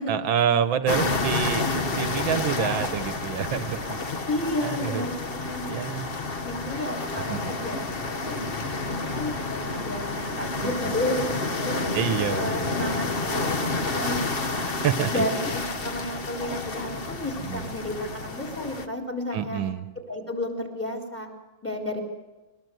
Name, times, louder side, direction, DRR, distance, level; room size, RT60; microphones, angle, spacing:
voice 1, 0.1-1.7 2.0-4.2 4.6-5.1 5.7-6.1 7.3-7.5 10.6-10.9 11.9-12.9 14.7-15.2 17.5-17.6 19.3-19.9, right 8 dB, 80° right, 11 dB, 1.7 m, -27 dB
sound 1, 0.9-18.9, left 3 dB, 35° left, 1.2 m, -30 dB
voice 2, 4.3-5.7 6.4-8.4 8.7-11.8 12.3-14.9 15.1-19.6 20.1-21.3 21.6-22.0, left 1 dB, 5° left, 1 dB, 4.0 m, -32 dB
22.0 x 21.0 x 7.9 m, 1.1 s
omnidirectional pair, 2.1 m